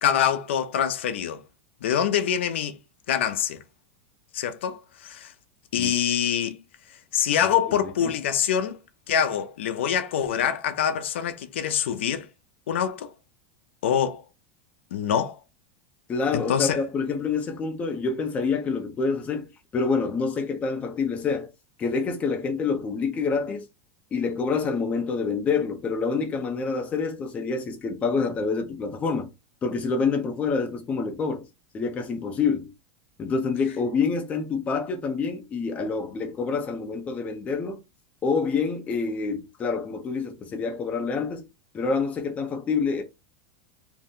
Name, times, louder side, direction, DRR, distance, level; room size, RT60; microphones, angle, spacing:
voice 1, 0.0-1.4 1.8-2.8 3.1-3.6 4.3-5.3 5.7-6.6 7.1-8.8 9.1-12.3 12.7-13.1 13.8-14.2 14.9-15.4 16.3-16.8, left 9 dB, 90° left, 0.5 m, -25 dB
voice 2, 16.1-21.5 21.8-23.7 24.1-29.3 29.6-31.5 31.7-32.7 33.2-37.8 38.2-41.5 41.7-43.0, left 4 dB, 20° left, 0.5 m, -27 dB
2.6 x 2.1 x 3.6 m
supercardioid pair, 140°, 6 cm